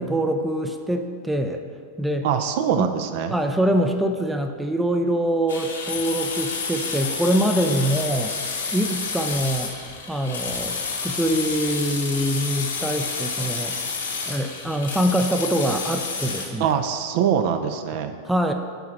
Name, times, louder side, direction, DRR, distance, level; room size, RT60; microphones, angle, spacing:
voice 1, 0.0-1.6 2.0-2.3 2.8-2.9 3.3-8.3 8.7-9.7 10.1-13.7 14.3-16.7 18.2-18.5, right 1 dB, 5° right, 5 dB, 0.5 m, -24 dB
voice 2, 2.2-3.3 16.6-18.1, right 8 dB, 50° right, 7 dB, 0.6 m, -23 dB
sound 1, 5.5-16.5, left 5 dB, 70° left, 1.3 m, -30 dB
7.9 x 5.8 x 7.1 m, 2.1 s
figure-of-eight pair, 90°, 0 cm